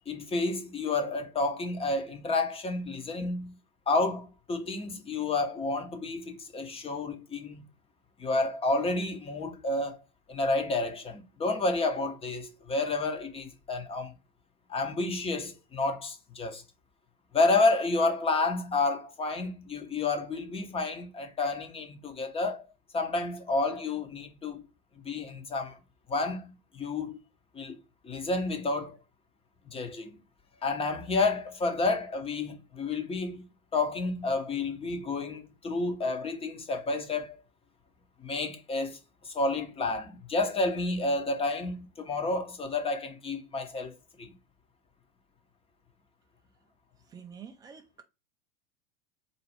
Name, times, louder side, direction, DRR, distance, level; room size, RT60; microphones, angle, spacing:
voice 1, 0.1-3.6 3.9-7.7 8.2-10.0 10.3-14.1 14.7-16.6 17.3-22.6 22.9-24.7 25.0-25.8 26.1-27.2 27.5-29.0 29.7-30.2 30.6-33.5 33.7-37.4 38.2-39.0 39.2-44.3, left 3 dB, 15° left, 0.7 m, -30 dB
voice 2, 47.1-48.0, right 7 dB, 10° right, 0.3 m, -47 dB
4.1 x 2.4 x 4.7 m
figure-of-eight pair, 90°, 43 cm